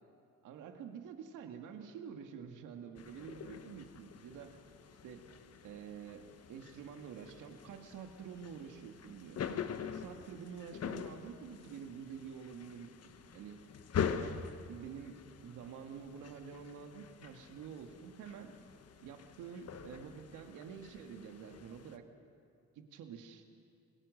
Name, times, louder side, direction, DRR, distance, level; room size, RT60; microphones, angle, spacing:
voice 1, 0.4-4.6 5.0-5.3 5.6-13.7 14.1-14.4 14.7-18.5 19.0-22.0 22.8-23.4, right 7 dB, 90° right, 5 dB, 2.0 m, -48 dB
sound 1, 3.0-22.0, left 7 dB, 55° left, 1.3 m, -44 dB
28.5 x 19.0 x 6.6 m, 2.4 s
cardioid pair, 90°, 30 cm